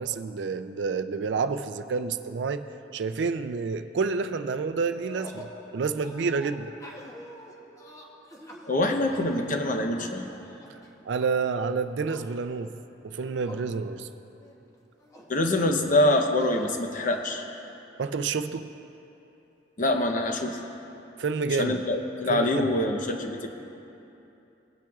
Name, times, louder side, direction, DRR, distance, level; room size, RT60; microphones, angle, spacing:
voice 1, 0.0-2.6 2.9-5.5 5.7-6.7 11.1-12.8 13.0-14.1 18.0-18.7 21.2-21.8 22.3-22.7, right 5 dB, 70° right, 10 dB, 0.4 m, -29 dB
sound 1, 4.9-5.6 6.0-11.3 11.6-12.5 13.1-13.7 14.1-14.2 14.4-15.3 16.4-16.7, equal, 20° left, 0.9 m, -47 dB
voice 2, 8.7-10.3 15.3-17.4 19.8-20.6 21.6-23.5, left 1 dB, 45° left, 4 dB, 0.8 m, -25 dB
18.0 x 8.8 x 2.4 m, 2.9 s
head